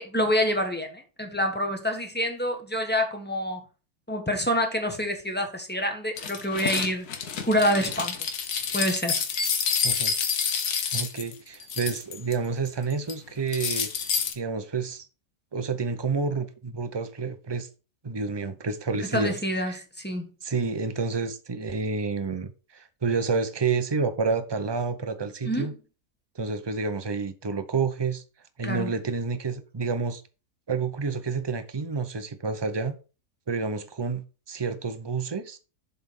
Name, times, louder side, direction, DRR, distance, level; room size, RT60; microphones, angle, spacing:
voice 1, 0.0-3.6 4.1-7.1 7.4-8.1 8.7-9.2 19.1-20.3 25.4-25.7 28.6-28.9, equal, 5° left, 1.3 m, -27 dB
sound 1, 6.2-12.3 12.7-13.1 13.5-14.3, left 6 dB, 70° left, 1.5 m, -28 dB
voice 2, 10.9-13.9 14.3-15.1 15.5-17.7 18.0-19.8 20.4-25.7 26.4-28.2 28.6-30.2 30.7-33.0 33.5-35.6, right 4 dB, 40° right, 0.3 m, -29 dB
7.4 x 4.3 x 5.4 m
omnidirectional pair, 1.7 m